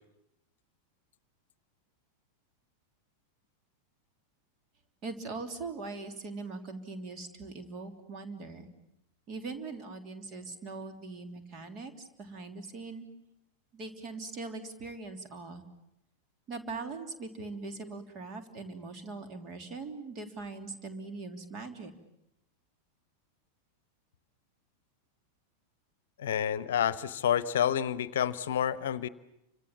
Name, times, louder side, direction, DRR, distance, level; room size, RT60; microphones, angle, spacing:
voice 1, 5.0-8.7 9.3-13.1 13.7-15.6 16.5-21.9, right 3 dB, 35° right, 6 dB, 3.2 m, -41 dB
voice 2, 26.2-29.1, left 9 dB, 60° left, 17 dB, 0.9 m, -29 dB
30.0 x 25.5 x 7.4 m, 0.86 s
figure-of-eight pair, 90°, 0 cm